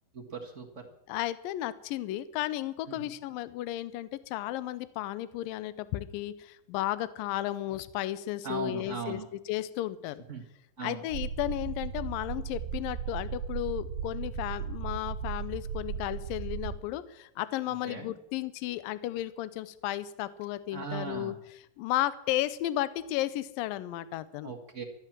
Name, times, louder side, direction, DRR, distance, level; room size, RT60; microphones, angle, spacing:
voice 1, 0.1-0.9 2.9-3.1 8.4-9.3 10.3-10.4 10.8-11.0 17.7-18.1 20.7-21.4 24.4-24.8, right 5 dB, 55° right, 0 dB, 0.8 m, -38 dB
voice 2, 1.1-9.2 9.5-10.2 10.8-21.3 21.8-24.5, left 14 dB, 80° left, 15 dB, 2.4 m, -34 dB
sound 1, 11.1-16.8, right 7 dB, 70° right, 2.1 m, -36 dB
14.0 x 11.5 x 7.4 m, 0.79 s
omnidirectional pair, 4.2 m